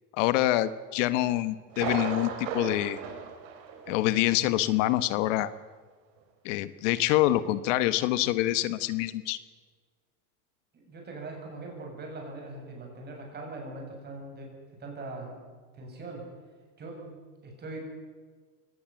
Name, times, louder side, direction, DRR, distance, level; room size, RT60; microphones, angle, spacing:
voice 1, 0.1-3.0 3.9-5.5 6.4-9.4, left 15 dB, 60° left, 14 dB, 1.3 m, -26 dB
Thunder, 1.7-4.3 4.6-4.7 5.2-5.3, right 6 dB, 55° right, 5.0 m, -35 dB
voice 2, 10.7-14.5 14.8-15.4 15.7-16.3 16.8-17.8, right 2 dB, 25° right, 1 dB, 7.6 m, -41 dB
23.5 x 18.5 x 7.7 m, 1.5 s
supercardioid pair, 145°, 42 cm